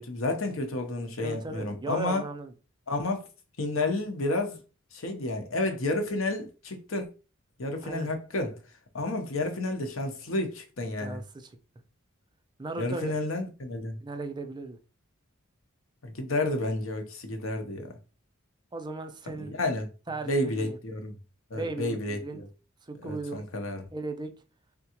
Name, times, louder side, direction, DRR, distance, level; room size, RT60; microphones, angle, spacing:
voice 1, 0.0-2.2 2.9-3.2 3.6-4.6 4.9-7.0 7.6-8.5 8.9-11.2 12.8-13.9 16.0-17.9 19.4-19.9 20.3-21.1 21.5-22.5 23.0-23.8, left 2 dB, 75° left, 0.9 m, -31 dB
voice 2, 1.2-2.5 7.8-8.1 11.0-11.5 12.6-13.2 14.0-14.8 18.7-19.5 20.1-20.8 21.5-22.4 22.9-23.4 23.9-24.3, right 2 dB, 20° right, 0.5 m, -36 dB
3.8 x 3.6 x 2.9 m
head